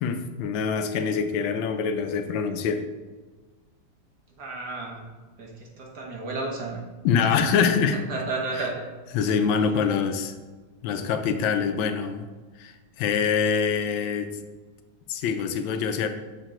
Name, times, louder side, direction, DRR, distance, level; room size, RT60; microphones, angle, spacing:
voice 1, 0.0-2.8 7.0-8.0 9.1-10.4 10.8-12.3 12.6-14.3 15.1-16.1, left 6 dB, 85° left, 7 dB, 1.4 m, -25 dB
voice 2, 4.4-5.0 5.4-6.8 8.1-8.8, right 3 dB, 60° right, -1 dB, 1.6 m, -32 dB
6.8 x 4.5 x 3.7 m, 1.3 s
omnidirectional pair, 2.1 m